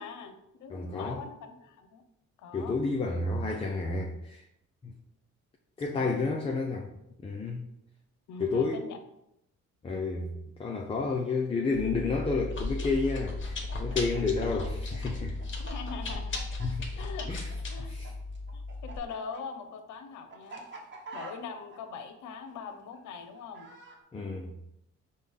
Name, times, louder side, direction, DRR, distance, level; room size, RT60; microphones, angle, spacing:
voice 1, 0.0-2.0 2.4-2.8 5.9-6.6 8.3-9.0 15.6-16.4 16.9-17.3 17.7-17.9 18.5-20.7 21.1-23.7, left 5 dB, 75° left, 8 dB, 0.6 m, -42 dB
voice 2, 0.7-1.2 2.5-4.4 4.8-4.9 5.8-6.9 7.2-7.7 8.4-8.8 9.8-10.3 10.6-15.4 16.6-16.9 17.3-17.5 17.9-18.1 24.1-24.5, left 3 dB, 20° left, 1 dB, 0.4 m, -30 dB
Chewing mastication, 11.7-19.0, left 3 dB, 40° left, 1.0 m, -35 dB
Chicken rooster, 13.7-18.1 18.3-24.0, right 3 dB, 40° right, 1.0 m, -46 dB
5.2 x 2.2 x 3.5 m, 0.80 s
cardioid pair, 90°, 30 cm